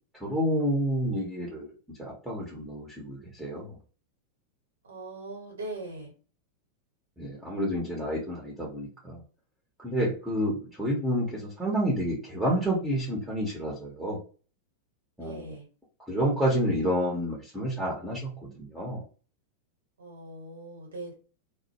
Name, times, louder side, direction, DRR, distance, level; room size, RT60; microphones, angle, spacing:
voice 1, 0.2-1.7 2.0-3.8 7.2-9.2 9.8-14.2 15.2-15.5 16.1-19.0, equal, 5° right, -4 dB, 0.8 m, -29 dB
voice 2, 4.8-6.1 15.2-15.7 20.0-21.1, right 2 dB, 70° right, 0 dB, 1.0 m, -40 dB
2.2 x 2.1 x 2.8 m, 0.37 s
figure-of-eight pair, 90°, 0 cm